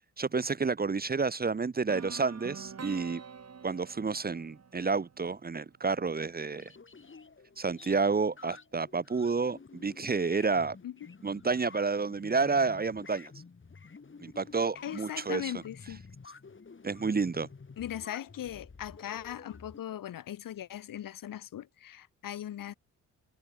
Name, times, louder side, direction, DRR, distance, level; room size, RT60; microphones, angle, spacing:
voice 1, 0.2-3.2 3.6-6.7 7.6-10.8 11.2-13.3 14.2-15.5 16.8-17.5, right 4 dB, 30° right, 1.0 m, -30 dB
sound 1, 1.9-5.8, right 6 dB, 50° right, 6.4 m, -46 dB
sound 2, 6.5-19.8, left 4 dB, 40° left, 4.9 m, -51 dB
voice 2, 14.8-16.0 17.8-22.7, left 11 dB, 85° left, 4.8 m, -39 dB
cardioid pair, 70°, 32 cm